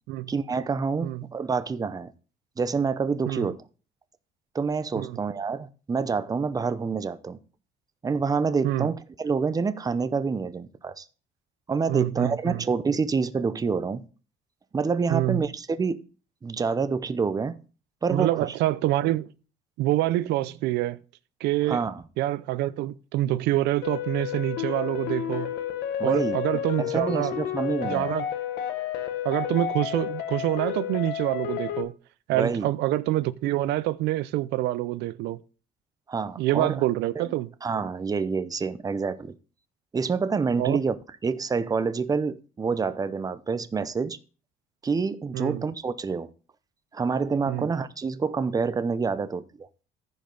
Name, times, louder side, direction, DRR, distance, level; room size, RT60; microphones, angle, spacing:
voice 1, 0.3-2.1 2.6-3.6 4.5-7.4 8.0-11.1 11.7-14.0 14.7-16.0 16.4-17.6 18.0-18.4 21.7-22.0 26.0-28.1 32.3-32.7 36.1-36.8 37.2-37.3 37.6-39.3 39.9-40.9 41.2-44.2 44.8-46.3 46.9-49.7, right 5 dB, 20° right, 0.7 m, -27 dB
voice 2, 11.9-12.6 15.1-15.4 18.1-19.3 19.8-21.0 21.4-21.8 22.2-25.5 26.0-27.4 27.8-28.3 29.2-31.9 32.3-35.4 36.4-37.5 40.6-40.8 45.3-45.6 47.5-47.7, right 15 dB, 85° right, 0.5 m, -26 dB
sound 1, 23.8-31.8, left 10 dB, 85° left, 1.3 m, -31 dB
14.5 x 5.3 x 3.9 m
cardioid pair, 110°, 17 cm